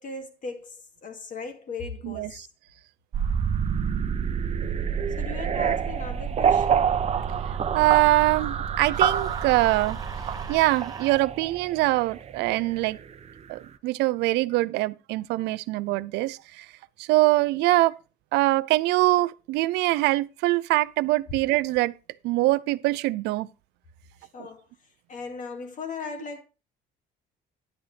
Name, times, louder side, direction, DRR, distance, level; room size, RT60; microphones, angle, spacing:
voice 1, 0.0-2.5 5.2-7.0 24.3-24.6 25.1-26.4, left 4 dB, 50° left, 2.3 m, -37 dB
voice 2, 2.0-2.4 7.5-10.0 10.5-13.0 13.5-16.7 17.0-17.9 18.3-21.9 22.2-23.5 24.4-24.5, right 19 dB, 90° right, 0.5 m, -23 dB
sound 1, 3.1-13.2, right 7 dB, 40° right, 0.8 m, -27 dB
sound 2, 8.9-11.2, right 4 dB, 20° right, 1.1 m, -40 dB
10.5 x 9.0 x 3.3 m
cardioid pair, 110°, 17 cm